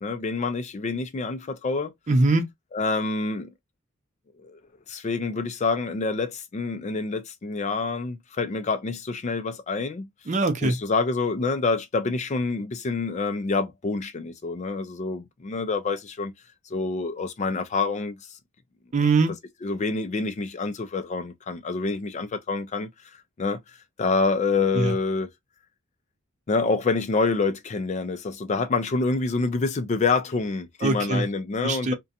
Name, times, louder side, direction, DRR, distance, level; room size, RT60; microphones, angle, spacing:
voice 1, 0.0-1.9 2.7-3.5 4.4-4.6 4.9-10.1 10.6-16.3 16.7-18.2 19.6-22.9 23.4-23.6 24.0-25.3 26.5-31.9, left 4 dB, 35° left, 0.4 m, -27 dB
voice 2, 2.1-2.5 10.3-10.8 18.9-19.3 24.7-24.9 30.8-31.3 31.6-31.9, right 3 dB, 35° right, 0.5 m, -22 dB
2.5 x 2.2 x 2.6 m
head